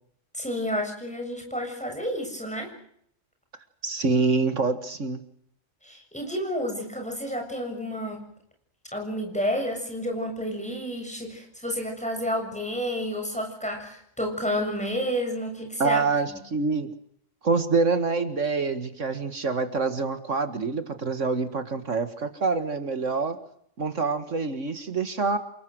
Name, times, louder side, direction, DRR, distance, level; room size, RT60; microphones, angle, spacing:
voice 1, 0.3-2.7 5.8-8.2 8.9-16.0, equal, 5° left, 3 dB, 7.2 m, -30 dB
voice 2, 3.8-5.2 15.8-16.9 17.4-23.4 23.8-25.4, right 4 dB, 75° right, 9 dB, 2.2 m, -26 dB
28.5 x 20.0 x 7.9 m, 0.68 s
omnidirectional pair, 1.3 m